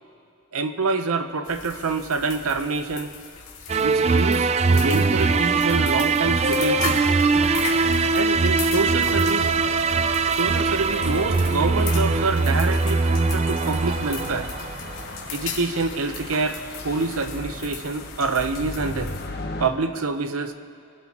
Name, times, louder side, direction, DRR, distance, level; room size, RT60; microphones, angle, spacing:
voice 1, 0.5-3.1 3.8-7.0 8.1-9.5 10.3-14.5 15.3-16.6 16.8-19.1 19.6-20.5, right 3 dB, 70° right, 8 dB, 0.8 m, -26 dB
sound 1, 1.4-19.3, left 6 dB, 65° left, 2.1 m, -38 dB
sound 2, 3.7-15.0, right 4 dB, 30° right, 0.3 m, -21 dB
sound 3, 7.3-19.7, left 2 dB, 45° left, 1.0 m, -38 dB
23.0 x 12.5 x 2.9 m, 2.4 s
head